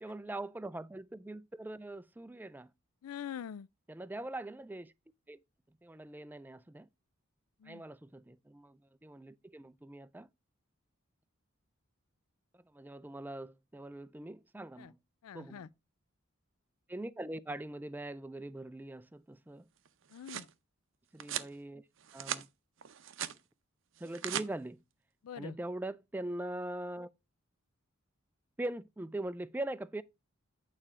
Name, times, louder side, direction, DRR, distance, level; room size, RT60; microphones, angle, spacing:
voice 1, 0.0-2.7 3.9-4.9 5.3-5.4 5.8-6.9 7.6-10.3 12.5-15.0 15.3-15.7 16.9-19.7 21.1-21.8 22.1-22.5 24.0-24.8 25.4-27.1 28.6-30.0, right 1 dB, 10° right, 0.3 m, -42 dB
voice 2, 3.0-3.7 7.6-7.8 14.8-14.9 15.2-15.7 20.1-20.5 25.2-25.6, left 8 dB, 85° left, 0.4 m, -44 dB
sound 1, 19.9-20.5 21.2-21.5 22.0-22.5 22.8-23.4 24.0-24.5, right 10 dB, 60° right, 0.6 m, -39 dB
8.9 x 4.3 x 4.8 m
head